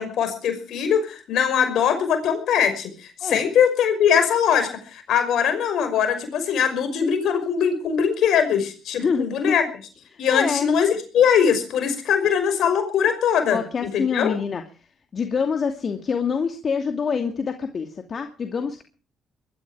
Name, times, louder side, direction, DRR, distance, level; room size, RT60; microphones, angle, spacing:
voice 1, 0.0-9.6 10.2-13.6 13.9-14.4, left 7 dB, 70° left, 9 dB, 5.6 m, -21 dB
voice 2, 9.0-9.6 10.1-10.7 13.5-14.6 15.1-18.8, left 6 dB, 50° left, 5 dB, 2.5 m, -26 dB
22.0 x 13.0 x 4.9 m, 0.39 s
hypercardioid pair, 50°, 0 cm